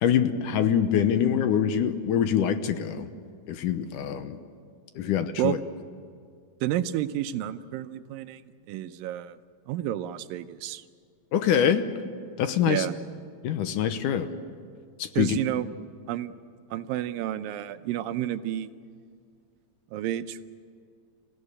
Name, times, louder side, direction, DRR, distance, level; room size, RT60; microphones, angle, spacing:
voice 1, 0.0-3.1 3.5-4.4 5.0-5.6 11.3-11.9 12.4-12.9 13.4-14.3 15.0-15.4, left 9 dB, 70° left, 9 dB, 2.4 m, -24 dB
voice 2, 6.6-9.4 9.7-10.8 12.7-12.9 15.2-15.7 16.1-16.3 16.7-18.7 19.9-20.5, right 12 dB, 80° right, 11 dB, 2.4 m, -30 dB
27.5 x 16.0 x 9.9 m, 2.2 s
omnidirectional pair, 4.0 m